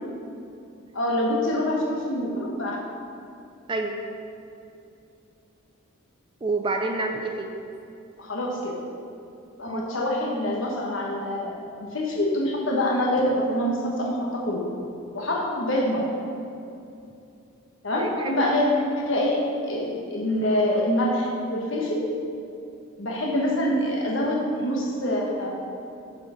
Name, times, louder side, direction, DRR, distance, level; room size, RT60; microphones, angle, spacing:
voice 1, 0.9-2.8 8.2-8.7 9.6-14.7 15.1-16.1 17.8-18.7 19.1-19.4 19.6-22.0 23.0-25.5, left 1 dB, 60° left, -2 dB, 1.3 m, -25 dB
voice 2, 6.4-7.5 9.7-9.9 18.0-18.6, right 3 dB, 25° right, 4 dB, 0.4 m, -28 dB
7.3 x 4.5 x 5.6 m, 2.6 s
head